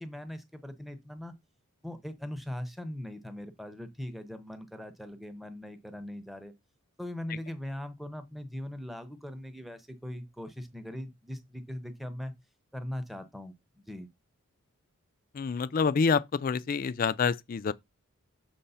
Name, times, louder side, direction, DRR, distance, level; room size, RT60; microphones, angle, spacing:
voice 1, 0.0-1.3 1.8-6.5 7.0-12.3 12.7-13.5 13.9-14.1, left 1 dB, ahead, 0.6 m, -40 dB
voice 2, 15.3-17.7, left 5 dB, 40° left, 0.3 m, -27 dB
6.8 x 3.1 x 5.5 m
head